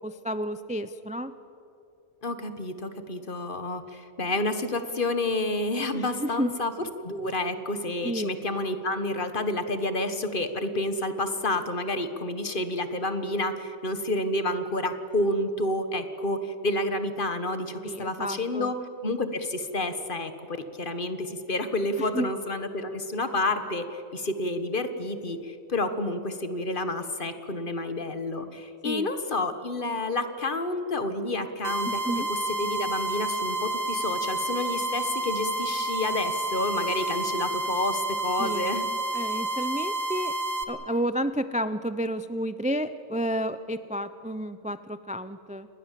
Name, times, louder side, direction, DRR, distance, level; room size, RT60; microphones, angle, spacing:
voice 1, 0.0-1.3 5.9-6.5 8.0-8.3 17.8-18.7 22.0-22.3 28.8-29.1 31.8-32.3 38.4-38.7 39.1-40.4 40.7-45.7, right 1 dB, 10° right, 12 dB, 0.3 m, -31 dB
voice 2, 2.2-6.7 7.0-18.7 19.0-32.0 32.3-38.9, left 2 dB, 40° left, 9 dB, 1.6 m, -29 dB
sound 1, 31.6-40.6, right 1 dB, 75° right, 1.9 m, -30 dB
29.0 x 20.5 x 7.6 m, 2.7 s
omnidirectional pair, 1.3 m